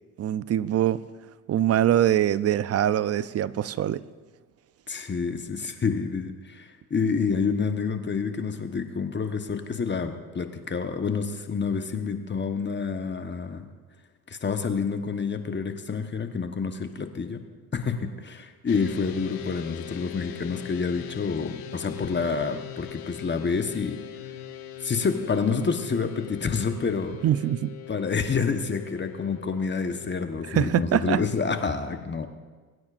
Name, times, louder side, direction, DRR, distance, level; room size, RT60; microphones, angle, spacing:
voice 1, 0.2-1.0 1.5-4.0 27.2-27.7 30.5-31.2, right 11 dB, 35° right, 17 dB, 0.5 m, -23 dB
voice 2, 4.9-13.7 14.4-17.4 17.7-24.0 24.8-27.1 27.9-32.3, left 5 dB, 25° left, 6 dB, 1.1 m, -28 dB
sound 1, 18.7-30.8, left 11 dB, 75° left, 1.2 m, -41 dB
21.5 x 9.4 x 2.5 m, 1.4 s
hypercardioid pair, 65°, 44 cm